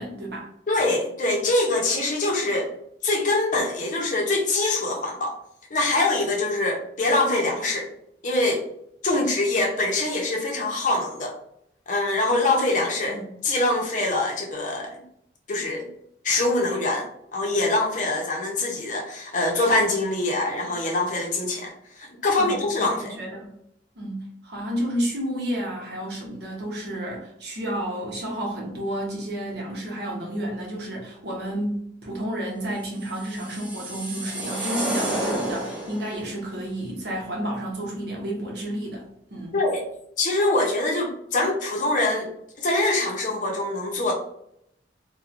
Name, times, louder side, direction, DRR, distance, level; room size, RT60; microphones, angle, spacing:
voice 1, 0.0-0.5 13.1-13.3 22.4-23.5 24.0-39.0 39.3-39.5, right 1 dB, 65° right, -1 dB, 0.8 m, -31 dB
voice 2, 0.7-2.7 3.0-5.3 5.7-7.9 8.2-8.6 9.0-11.4 11.9-15.0 15.5-15.9 16.2-23.1 39.5-39.8 40.2-42.3 42.6-44.1, left 2 dB, 45° left, -1 dB, 0.6 m, -24 dB
sound 1, 33.0-36.2, right 1 dB, 5° right, 0.7 m, -30 dB
2.8 x 2.1 x 2.5 m, 0.73 s
head